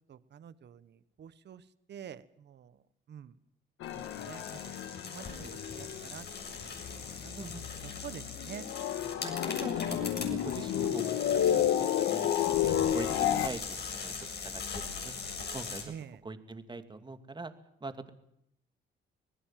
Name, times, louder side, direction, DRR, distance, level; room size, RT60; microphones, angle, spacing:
voice 1, 0.1-2.8 3.1-3.4 3.9-4.8 5.0-8.7 15.8-16.2, right 8 dB, 60° right, 15 dB, 1.4 m, -48 dB
sound 1, 3.8-6.6 6.9-13.5, left 10 dB, 85° left, 1.7 m, -31 dB
sound 2, 3.8-15.8, left 5 dB, 55° left, 7.5 m, -41 dB
voice 2, 5.3-5.8 7.4-7.6 9.2-15.2 15.5-15.9 16.2-17.5 17.8-18.1, right 3 dB, 25° right, 9 dB, 2.5 m, -43 dB
26.0 x 18.5 x 7.6 m, 0.76 s
cardioid pair, 90°, 20 cm